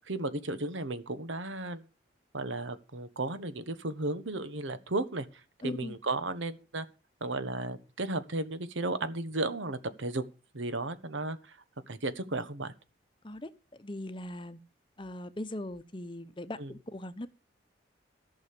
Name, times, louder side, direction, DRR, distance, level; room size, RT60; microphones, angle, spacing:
voice 1, 0.1-1.9 2.3-5.3 5.6-6.9 7.2-10.2 10.5-11.6 11.9-12.7 16.6-16.7, right 2 dB, 85° right, 1.3 m, -34 dB
voice 2, 5.6-6.0 13.2-14.6 15.0-17.3, left 1 dB, 25° left, 0.8 m, -40 dB
14.5 x 6.5 x 6.7 m
head